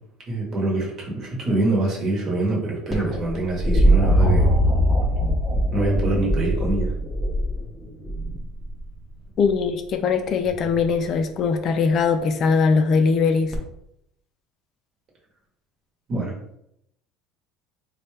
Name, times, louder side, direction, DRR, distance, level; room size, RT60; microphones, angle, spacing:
voice 1, 0.3-4.5 5.7-6.9 16.1-16.3, right 2 dB, 30° right, -3 dB, 1.0 m, -25 dB
sound 1, 2.9-8.8 10.4-11.0 13.5-13.6, equal, ahead, 0.6 m, -21 dB
voice 2, 9.4-13.5, left 5 dB, 40° left, 6 dB, 0.3 m, -21 dB
4.0 x 2.2 x 3.2 m, 0.77 s
cardioid pair, 160°, 0 cm